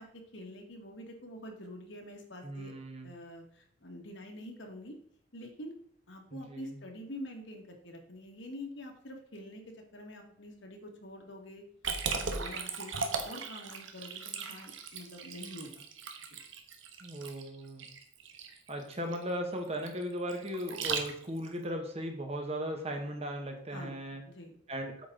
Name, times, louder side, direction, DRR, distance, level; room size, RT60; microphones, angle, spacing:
voice 1, 0.0-2.7 3.0-5.0 5.3-5.7 6.1-9.6 9.9-11.6 12.2-15.8 16.3-16.4 23.7-23.9 24.3-24.6, left 1 dB, 70° left, 2 dB, 1.9 m, -46 dB
voice 2, 2.4-3.1 6.3-6.8 17.0-17.9 18.7-24.2 24.7-25.1, equal, 35° right, 3 dB, 1.4 m, -37 dB
Liquid, 11.8-21.5, right 5 dB, 80° right, 1.1 m, -38 dB
8.6 x 6.2 x 3.9 m, 0.65 s
head